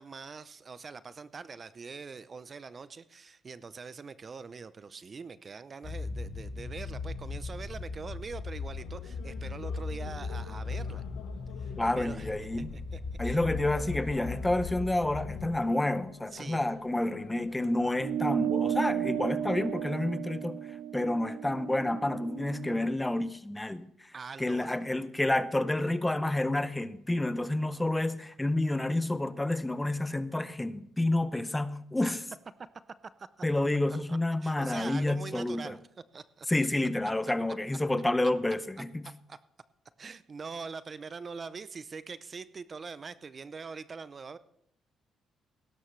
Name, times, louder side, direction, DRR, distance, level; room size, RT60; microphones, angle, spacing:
voice 1, 0.0-11.0 11.6-12.3 12.7-13.4 16.3-16.6 24.1-24.8 32.0-32.1 33.2-33.3 34.1-35.9 36.1-36.5 39.3-39.4 40.0-44.4, right 5 dB, 40° right, 0.5 m, -43 dB
sound 1, 5.8-15.5, left 4 dB, 50° left, 1.6 m, -38 dB
sound 2, 7.6-19.8, left 9 dB, 90° left, 1.0 m, -49 dB
voice 2, 11.8-12.7 13.2-32.2 33.4-35.7 36.5-39.0, left 1 dB, 10° left, 0.6 m, -29 dB
sound 3, 18.0-22.8, right 9 dB, 85° right, 0.6 m, -33 dB
17.0 x 12.5 x 3.2 m
cardioid pair, 90°, 0 cm